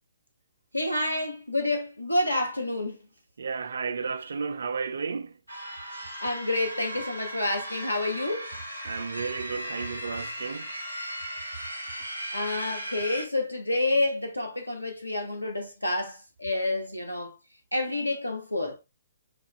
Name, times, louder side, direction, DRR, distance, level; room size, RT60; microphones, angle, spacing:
voice 1, 0.7-3.0 6.2-8.5 12.3-17.3 17.7-18.8, left 2 dB, 85° left, 0.9 m, -28 dB
voice 2, 3.4-5.3 8.8-10.7, right 5 dB, 60° right, 0.3 m, -33 dB
sound 1, 5.5-13.3, right 1 dB, 80° right, 1.4 m, -37 dB
5.9 x 2.3 x 2.3 m
figure-of-eight pair, 125°, 0 cm